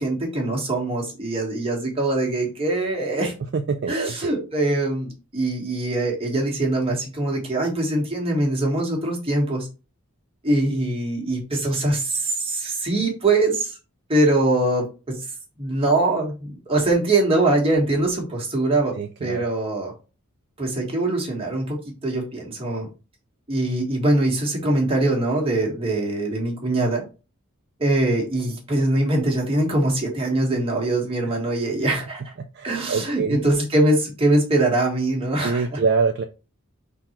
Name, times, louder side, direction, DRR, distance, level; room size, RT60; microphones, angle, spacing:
voice 1, 0.0-3.3 3.9-9.7 10.4-13.7 14.1-15.2 15.6-18.9 19.2-19.9 20.6-21.8 22.0-22.9 23.5-27.1 27.8-32.3 32.6-35.8, right 2 dB, 25° right, 1.5 m, -22 dB
voice 2, 3.5-4.3 19.0-19.5 32.6-33.4 35.4-36.2, right 4 dB, 50° right, 0.4 m, -24 dB
3.9 x 2.9 x 4.3 m
head